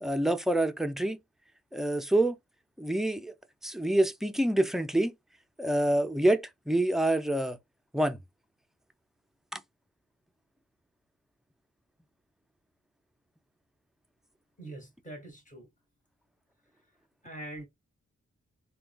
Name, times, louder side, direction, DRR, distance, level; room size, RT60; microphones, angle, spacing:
voice 1, 0.0-1.2 1.7-2.4 2.8-3.3 3.6-5.1 5.6-7.6 7.9-8.2 9.5-9.6, right 1 dB, ahead, 0.4 m, -27 dB
voice 2, 14.6-15.7 17.2-17.7, right 1 dB, 25° left, 1.5 m, -43 dB
3.6 x 2.2 x 2.3 m
wide cardioid pair, 85°, 29 cm